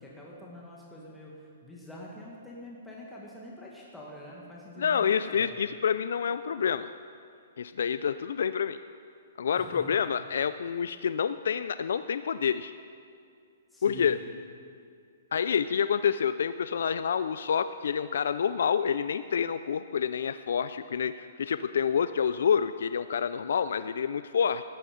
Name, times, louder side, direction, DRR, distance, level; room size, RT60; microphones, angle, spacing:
voice 1, 0.0-5.6 9.6-9.9 13.7-14.2, left 1 dB, 5° left, -5 dB, 1.7 m, -46 dB
voice 2, 4.8-6.9 7.6-8.8 9.4-12.7 13.8-14.2 15.3-24.6, left 7 dB, 75° left, 12 dB, 0.4 m, -28 dB
14.5 x 10.5 x 5.1 m, 2.4 s
hypercardioid pair, 145°, 0 cm